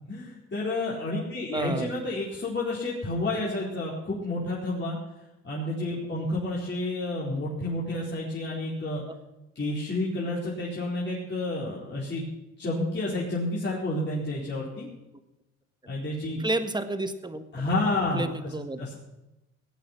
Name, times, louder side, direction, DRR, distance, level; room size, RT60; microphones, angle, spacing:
voice 1, 0.0-5.0 5.4-9.0 9.5-12.2 12.6-14.9 15.9-16.4 17.5-18.5 18.8-19.0, left 2 dB, 35° left, -6 dB, 4.6 m, -30 dB
voice 2, 1.5-1.9 16.4-17.4 18.1-18.8, right 2 dB, 15° right, 9 dB, 1.6 m, -30 dB
18.5 x 9.2 x 5.9 m, 0.96 s
cardioid pair, 90°, 30 cm